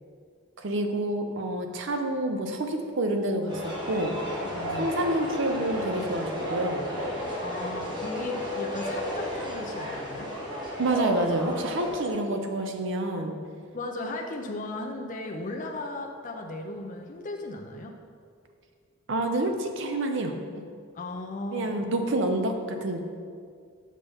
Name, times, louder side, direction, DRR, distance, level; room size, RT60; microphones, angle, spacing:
voice 1, 0.6-4.2 4.7-6.9 10.8-13.3 19.1-20.3 21.5-23.1, right 1 dB, 65° right, 5 dB, 0.7 m, -28 dB
sound 1, 3.5-12.1, equal, 20° right, 1.6 m, -33 dB
voice 2, 4.4-4.9 7.4-10.3 13.7-17.9 20.9-21.7, left 2 dB, 40° left, 1 dB, 0.5 m, -36 dB
7.5 x 5.5 x 3.5 m, 2.1 s
head